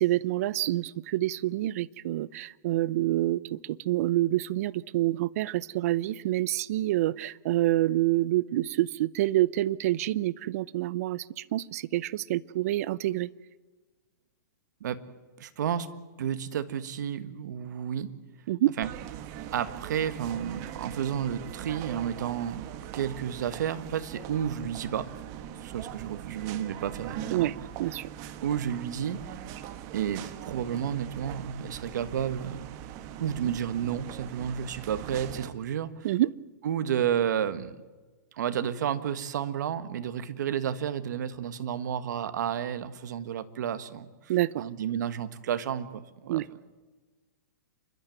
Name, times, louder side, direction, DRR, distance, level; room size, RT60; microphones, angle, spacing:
voice 1, 0.0-13.3 18.5-18.8 27.3-28.1 36.0-36.3 44.3-44.6 46.3-46.5, right 15 dB, 50° right, 21 dB, 0.6 m, -27 dB
voice 2, 15.4-15.9 16.2-18.1 18.8-18.9 19.5-25.1 25.6-27.5 28.4-29.4 29.9-32.7 33.2-36.1 36.6-37.8 38.3-44.3 44.6-46.4, right 9 dB, 65° right, 12 dB, 1.5 m, -31 dB
sound 1, 18.8-35.5, right 11 dB, 35° right, 1.4 m, -41 dB
28.5 x 12.5 x 9.4 m, 1.3 s
hypercardioid pair, 145°, 10 cm